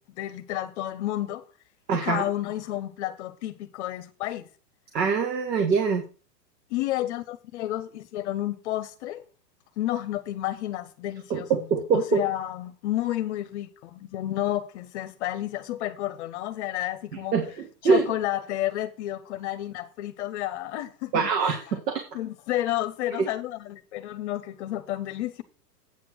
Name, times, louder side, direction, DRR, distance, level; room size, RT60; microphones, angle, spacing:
voice 1, 0.2-1.4 1.9-4.5 6.7-9.2 9.8-11.7 11.9-17.3 17.8-21.8 22.1-25.4, left 14 dB, 45° left, 0.8 m, -31 dB
voice 2, 1.9-2.2 4.9-6.0 11.3-12.0 17.3-18.0 21.1-21.6 21.9-22.0, right 6 dB, 90° right, 1.8 m, -24 dB
8.7 x 6.0 x 6.1 m
hypercardioid pair, 140°, 48 cm